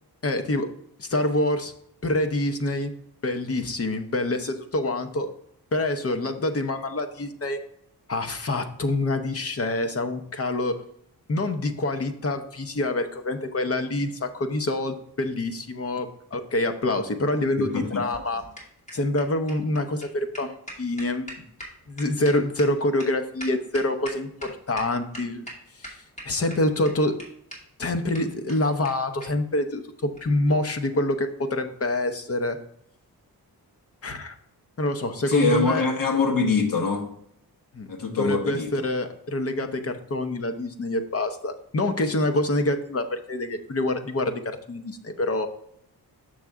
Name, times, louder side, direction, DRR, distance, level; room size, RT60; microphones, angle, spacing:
voice 1, 0.2-0.7 1.0-1.7 2.0-2.9 3.2-5.3 5.7-7.6 8.1-10.8 11.3-18.4 18.9-21.3 21.9-25.5 25.8-27.2 27.8-32.6 34.0-34.4 34.8-35.8 37.7-37.9 38.2-45.5, left 1 dB, 40° left, 7 dB, 0.7 m, -26 dB
voice 2, 17.6-18.0 35.3-37.1 37.9-38.7, left 4 dB, 60° left, 3 dB, 1.2 m, -24 dB
sound 1, 17.8-24.5 24.8-24.9 25.1-25.5 25.8-26.5 26.9-27.0 27.2-27.3 27.5-27.6 27.8-27.9 28.1-28.2 28.5-28.6 28.8-28.9 29.2-29.3 30.1-30.3, equal, 20° left, 2.3 m, -40 dB
6.7 x 6.3 x 3.6 m, 0.71 s
wide cardioid pair, 135°, 38 cm